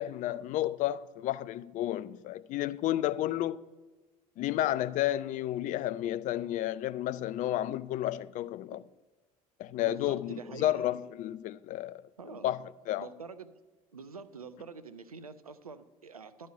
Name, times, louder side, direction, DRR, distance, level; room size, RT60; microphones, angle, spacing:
voice 1, 0.0-3.6 4.4-8.8 9.6-12.0 12.4-12.6 12.9-13.1, left 13 dB, 45° left, 0.4 m, -31 dB
voice 2, 9.8-10.9 12.2-12.5 13.0-13.5 13.9-16.5, right 5 dB, 90° right, 0.5 m, -46 dB
11.5 x 4.2 x 7.5 m
figure-of-eight pair, 60°, 18 cm